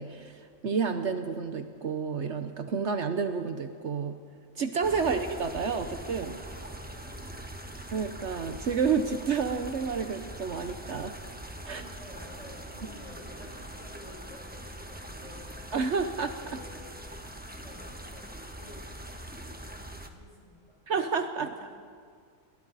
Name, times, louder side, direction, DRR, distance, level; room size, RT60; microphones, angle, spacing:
voice 1, 0.0-4.2 4.6-6.4 7.9-11.1 11.6-11.8 15.7-16.6 20.9-21.5, right 5 dB, 60° right, 7 dB, 1.2 m, -30 dB
sound 1, 4.8-20.1, right 1 dB, 5° right, 1.2 m, -43 dB
voice 2, 6.6-7.8 11.6-15.7 16.4-20.8 21.4-21.7, left 1 dB, 30° left, -4 dB, 6.9 m, -52 dB
29.5 x 22.0 x 4.1 m, 2.2 s
omnidirectional pair, 1.3 m